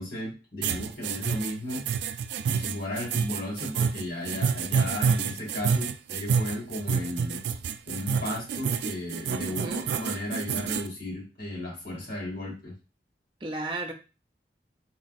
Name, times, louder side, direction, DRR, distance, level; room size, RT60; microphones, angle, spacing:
voice 1, 0.0-1.9 2.4-7.4 7.9-12.7, left 1 dB, 60° left, -4 dB, 2.2 m, -34 dB
sound 1, 0.6-10.9, right 6 dB, 80° right, 0.3 m, -28 dB
voice 2, 9.4-9.8 13.4-13.9, right 2 dB, 30° right, 3 dB, 0.6 m, -34 dB
4.2 x 2.3 x 4.1 m, 0.32 s
head